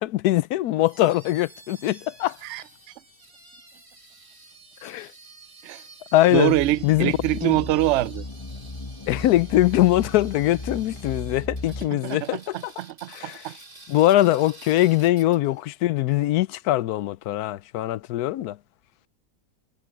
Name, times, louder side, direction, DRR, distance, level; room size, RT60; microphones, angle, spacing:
voice 1, 0.0-2.4 4.8-5.1 6.1-6.5 6.8-7.1 7.4-7.6 9.1-12.6 13.1-13.4 13.9-18.6, left 15 dB, 80° left, 1.1 m, -22 dB
sound 1, 0.8-15.6, right 2 dB, 50° right, 4.5 m, -50 dB
sound 2, 6.3-11.9, left 2 dB, 20° left, 1.2 m, -36 dB
voice 2, 6.3-8.3 11.9-13.6, right 15 dB, 70° right, 0.7 m, -25 dB
omnidirectional pair, 1.6 m